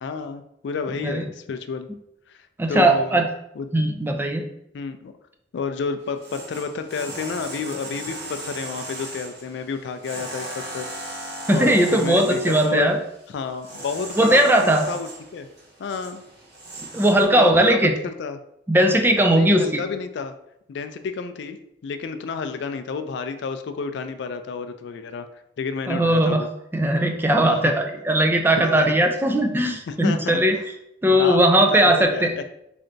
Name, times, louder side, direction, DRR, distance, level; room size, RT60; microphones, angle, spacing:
voice 1, 0.0-1.9 2.3-3.3 3.5-3.7 4.7-5.1 5.5-10.9 11.5-12.9 13.3-15.5 15.8-16.2 17.3-18.4 19.3-20.3 20.7-21.6 21.8-25.3 25.6-26.5 27.4-27.7 28.6-29.0 29.9-30.6 31.0-32.4, left 5 dB, 65° left, 9 dB, 0.3 m, -30 dB
voice 2, 2.6-3.2 3.7-4.4 11.5-13.0 14.2-14.8 16.9-17.9 18.7-19.8 25.9-26.4 26.7-30.5 31.0-32.3, right 1 dB, 10° right, 4 dB, 0.3 m, -18 dB
sound 1, 6.0-17.2, right 1 dB, 60° right, 1.0 m, -37 dB
3.8 x 3.3 x 2.6 m, 0.78 s
head